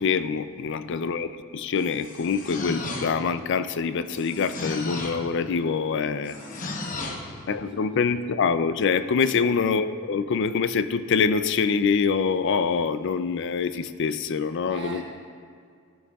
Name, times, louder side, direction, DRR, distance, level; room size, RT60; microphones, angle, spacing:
voice 1, 0.0-6.3 7.5-15.0, left 5 dB, 60° left, 12 dB, 0.4 m, -25 dB
voice 2, 0.6-1.1 6.3-7.2 7.5-7.9 9.3-9.6 14.7-15.0, right 3 dB, 55° right, -1 dB, 1.3 m, -45 dB
sound 1, 1.8-3.4 4.1-5.3 6.3-7.3, left 2 dB, 40° left, 1.0 m, -34 dB
14.0 x 11.0 x 2.4 m, 2.2 s
head